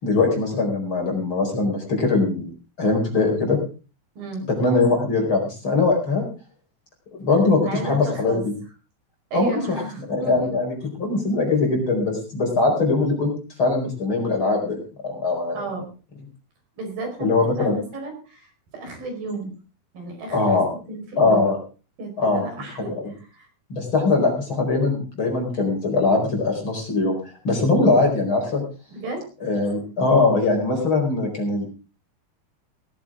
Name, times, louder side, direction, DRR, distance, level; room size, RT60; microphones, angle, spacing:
voice 1, 0.0-2.5 2.8-3.6 4.5-6.2 7.1-8.5 9.3-9.8 10.1-13.3 13.6-14.8 15.0-15.6 17.2-17.8 19.2-19.4 20.3-20.7 21.2-21.6 22.2-22.5 22.9-23.0 23.7-27.2 27.4-28.6 29.4-31.6, left 3 dB, 35° left, 2 dB, 5.1 m, -21 dB
voice 2, 7.5-8.4 9.3-10.5 15.5-15.9 16.8-19.5 19.9-20.6 20.9-21.5 22.0-23.5 28.9-29.3, right 2 dB, 70° right, 3 dB, 6.6 m, -33 dB
18.0 x 14.5 x 3.7 m, 0.34 s
omnidirectional pair, 4.3 m